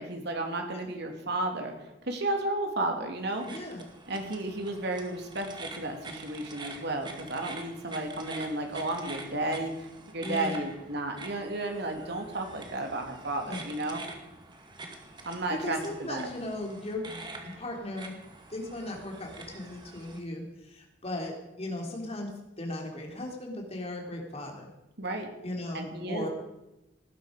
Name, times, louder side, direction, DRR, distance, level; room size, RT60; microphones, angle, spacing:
voice 1, 0.0-1.7 2.0-3.4 4.1-14.0 15.2-16.3 25.0-25.3 25.7-26.3, right 2 dB, 60° right, 3 dB, 2.9 m, -33 dB
sound 1, 3.3-20.2, right 2 dB, 25° right, 2.1 m, -46 dB
voice 2, 3.4-3.8 10.2-10.6 13.5-13.6 15.5-17.1 17.4-18.1 18.5-22.3 22.6-24.7 25.4-26.3, left 1 dB, 35° left, 1 dB, 3.3 m, -37 dB
19.0 x 11.5 x 5.3 m, 0.95 s
head